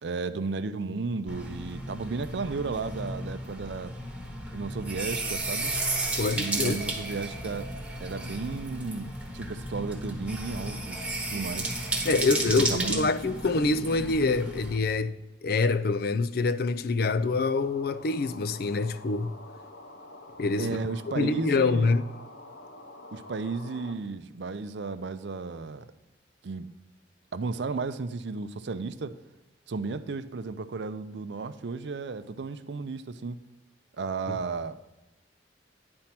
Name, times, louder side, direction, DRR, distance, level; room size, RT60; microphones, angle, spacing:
voice 1, 0.0-4.0 4.5-5.7 6.4-7.7 8.0-11.0 11.3-11.7 12.4-13.1 20.6-21.9 23.1-25.9 26.4-26.7 27.3-29.1 29.7-33.4 34.0-35.0, right 4 dB, 70° right, 0.5 m, -34 dB
sound 1, 1.3-14.8, right 2 dB, 5° right, 1.1 m, -33 dB
voice 2, 6.2-6.8 12.0-15.2 15.4-19.3 20.4-20.8 21.2-22.1 34.3-34.4, left 3 dB, 55° left, 0.4 m, -26 dB
sound 2, 17.4-23.9, left 2 dB, 85° left, 0.8 m, -47 dB
10.5 x 4.4 x 5.8 m
head